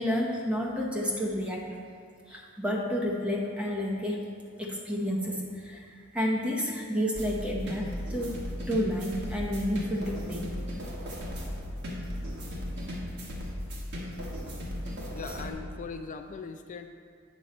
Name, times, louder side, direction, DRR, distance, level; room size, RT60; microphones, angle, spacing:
voice 1, 0.0-1.8 2.3-4.2 4.6-5.9 6.1-10.5, equal, 5° right, -2 dB, 0.8 m, -30 dB
sound 1, 7.1-15.5, equal, 55° right, 1.4 m, -36 dB
voice 2, 15.1-16.9, left 5 dB, 35° left, 6 dB, 0.3 m, -40 dB
8.3 x 6.1 x 4.2 m, 2.2 s
head